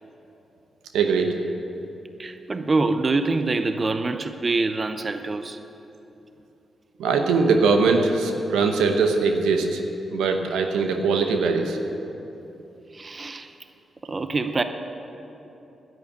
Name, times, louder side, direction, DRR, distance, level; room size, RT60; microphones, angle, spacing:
voice 1, 0.9-1.3 7.0-9.8 10.1-11.8, right 4 dB, 85° right, 5 dB, 0.9 m, -21 dB
voice 2, 2.2-5.6 12.9-13.5 14.0-14.6, right 3 dB, 40° right, 9 dB, 0.7 m, -25 dB
10.5 x 9.4 x 8.6 m, 3.0 s
supercardioid pair, 45°, 0 cm